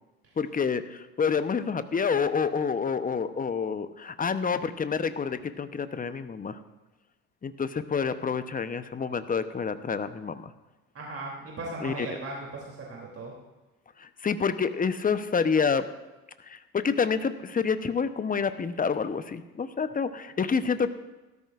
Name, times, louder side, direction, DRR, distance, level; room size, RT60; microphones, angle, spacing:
voice 1, 0.4-6.6 7.4-10.5 11.8-12.1 14.0-15.8 16.5-20.9, left 5 dB, 20° left, 12 dB, 0.9 m, -28 dB
voice 2, 10.9-13.3, right 2 dB, 35° right, -2 dB, 3.1 m, -37 dB
17.5 x 13.0 x 2.5 m, 1.1 s
hypercardioid pair, 65°, 41 cm